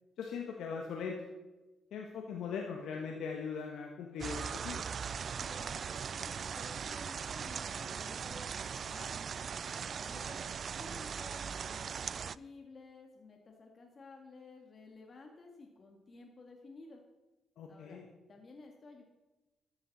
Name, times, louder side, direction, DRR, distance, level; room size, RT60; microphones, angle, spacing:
voice 1, 0.2-1.3 1.9-4.9 17.6-18.1, left 6 dB, 75° left, 1 dB, 1.4 m, -40 dB
sound 1, 4.2-12.4, right 7 dB, 55° right, 0.3 m, -39 dB
voice 2, 5.4-8.5 8.8-9.1 10.0-17.0 17.7-18.0 18.3-19.0, left 3 dB, 45° left, 2 dB, 2.0 m, -54 dB
13.0 x 11.0 x 4.2 m, 1.1 s
supercardioid pair, 50°, 0 cm